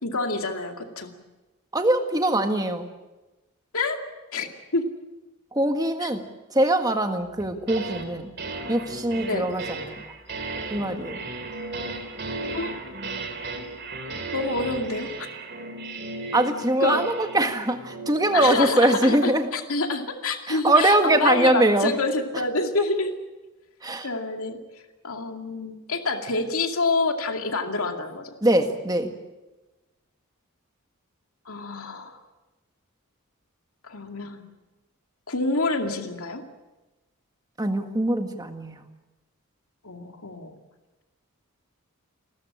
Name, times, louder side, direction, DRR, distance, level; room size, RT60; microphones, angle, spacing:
voice 1, 0.0-1.1 3.7-4.0 4.3-4.8 6.0-6.1 9.3-9.5 12.5-12.7 14.3-15.3 16.8-17.0 18.3-23.1 24.0-24.6 25.0-28.3 31.5-32.2 33.8-34.4 35.3-36.4 39.8-40.6, left 3 dB, 75° left, 4 dB, 2.3 m, -27 dB
voice 2, 1.7-2.9 5.5-6.2 6.5-8.3 8.7-10.0 10.7-11.2 16.3-19.5 20.5-21.9 23.8-24.1 28.4-29.1 37.6-38.8, right 1 dB, 15° right, 6 dB, 1.7 m, -22 dB
sound 1, 7.4-8.1 8.4-18.8, right 2 dB, 50° right, 3.2 m, -35 dB
30.0 x 14.0 x 8.7 m, 1.1 s
head